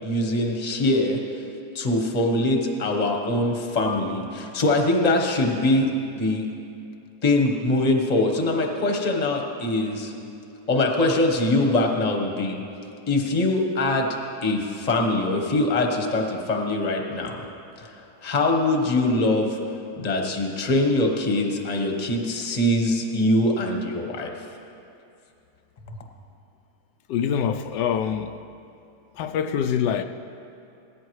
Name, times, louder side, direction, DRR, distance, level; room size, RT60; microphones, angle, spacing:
voice 1, 0.0-1.2 1.7-6.5 7.2-10.1 10.7-12.6 13.1-14.1 14.4-17.4 17.8-17.9 18.2-19.6 20.0-24.3, left 2 dB, 25° left, 1 dB, 1.1 m, -23 dB
voice 2, 27.1-28.3 29.2-30.0, left 8 dB, 85° left, 7 dB, 1.2 m, -24 dB
17.5 x 14.0 x 3.2 m, 2.6 s
omnidirectional pair, 1.8 m